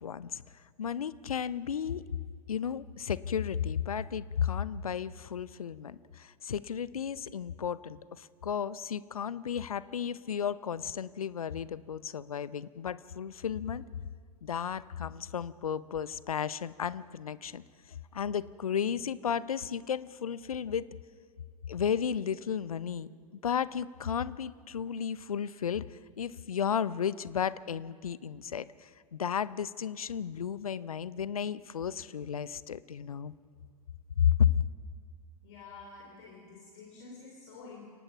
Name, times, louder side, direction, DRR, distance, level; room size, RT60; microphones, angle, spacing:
voice 1, 0.0-2.0 2.5-13.8 14.4-17.6 17.9-20.9 21.7-23.1 23.4-33.3 34.2-34.6, left 8 dB, 70° left, 18 dB, 0.7 m, -33 dB
voice 2, 35.4-37.9, left 4 dB, 55° left, 0 dB, 3.7 m, -49 dB
30.0 x 18.0 x 6.0 m, 2.1 s
figure-of-eight pair, 95°, 19 cm